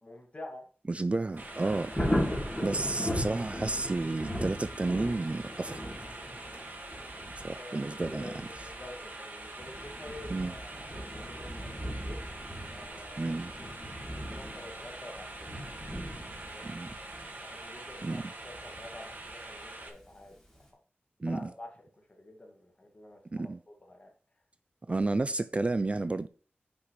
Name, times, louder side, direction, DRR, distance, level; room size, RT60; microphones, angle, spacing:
voice 1, 0.0-0.6 2.7-2.9 7.4-12.2 12.7-13.3 14.1-15.5 16.5-16.6 17.4-20.4 21.3-21.9 22.2-24.1, left 1 dB, 35° left, 2.0 m, -48 dB
voice 2, 0.9-2.0 2.6-5.9 7.4-8.5 10.3-10.5 13.2-13.5 16.6-17.0 18.0-18.3 21.2-21.5 23.3-23.6 24.9-26.3, right 2 dB, 30° right, 0.3 m, -31 dB
Thunder, 1.3-20.1 20.5-20.6, equal, 10° left, 3.2 m, -38 dB
sound 1, 1.4-19.9, right 2 dB, 50° right, 1.8 m, -44 dB
9.7 x 6.0 x 3.2 m
wide cardioid pair, 100°, 4 cm